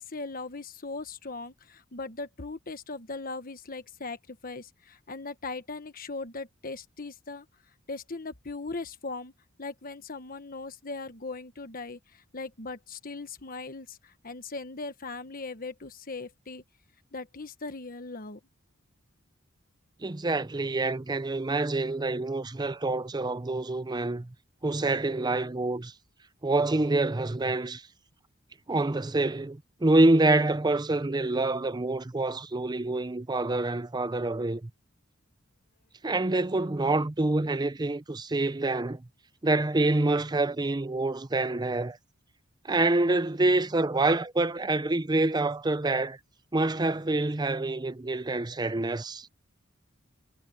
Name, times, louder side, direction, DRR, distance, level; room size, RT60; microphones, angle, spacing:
voice 1, 0.0-7.5 7.9-9.3 9.6-16.6 17.1-18.4, left 3 dB, 45° left, 1.3 m, -39 dB
voice 2, 20.0-24.3 24.6-25.9 26.4-27.8 28.7-34.7 36.0-39.0 39.4-42.0 42.6-46.2 46.5-49.3, right 2 dB, 20° right, 0.6 m, -26 dB
head